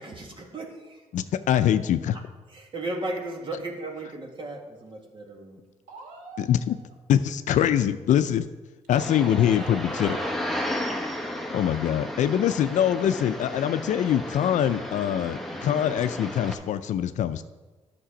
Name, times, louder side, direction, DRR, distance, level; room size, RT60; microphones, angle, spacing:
voice 1, 0.0-1.0 2.5-5.6, right 2 dB, 40° right, 1 dB, 1.9 m, -35 dB
voice 2, 1.1-2.2 6.5-6.8 7.1-8.5 8.9-10.2 11.5-17.4, left 10 dB, 80° left, 12 dB, 0.4 m, -23 dB
voice 3, 5.9-6.9 9.2-10.7, right 4 dB, 85° right, 0 dB, 1.8 m, -46 dB
sound 1, 8.9-16.5, left 1 dB, ahead, 1.1 m, -33 dB
10.0 x 6.7 x 5.0 m, 1.2 s
cardioid pair, 80°, 12 cm